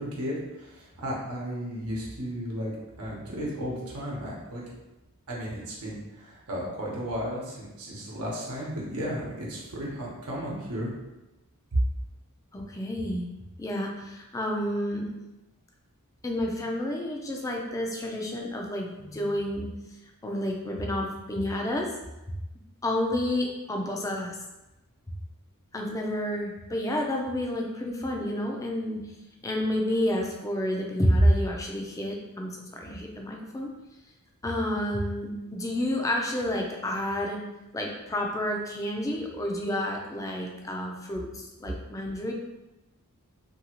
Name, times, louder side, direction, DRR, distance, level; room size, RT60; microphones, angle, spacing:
voice 1, 0.0-4.6 5.3-10.9, equal, 85° right, -4 dB, 0.9 m, -34 dB
voice 2, 12.5-13.3 13.6-15.1 16.2-19.7 20.2-21.9 22.8-24.4 25.7-29.0 29.4-33.7 34.4-37.4 37.7-42.3, left 1 dB, 15° left, 0 dB, 0.4 m, -29 dB
2.8 x 2.7 x 2.9 m, 0.99 s
head